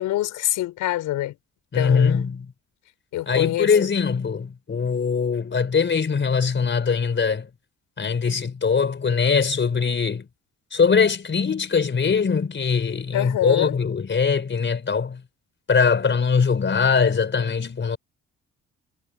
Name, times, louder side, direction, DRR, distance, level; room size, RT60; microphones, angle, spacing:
voice 1, 0.0-1.3 1.7-2.3 3.1-3.7 13.1-13.7, left 14 dB, 90° left, 4.9 m, -25 dB
voice 2, 1.7-2.5 3.3-7.5 8.0-10.3 10.7-15.2 15.7-18.0, left 5 dB, 40° left, 4.4 m, -21 dB
cardioid pair, 90°, 30 cm